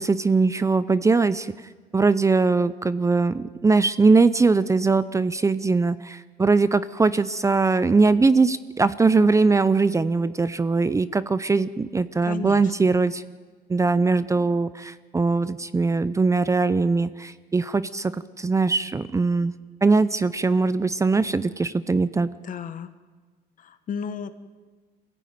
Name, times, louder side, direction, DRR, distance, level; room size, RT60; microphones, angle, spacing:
voice 1, 0.0-1.5 1.9-13.2 13.7-19.5 19.8-22.3, right 3 dB, 20° right, 15 dB, 0.6 m, -21 dB
voice 2, 12.2-12.7 22.4-22.9 23.6-24.3, left 7 dB, 50° left, 11 dB, 1.4 m, -33 dB
23.5 x 15.5 x 9.4 m, 1.4 s
cardioid pair, 110°, 17 cm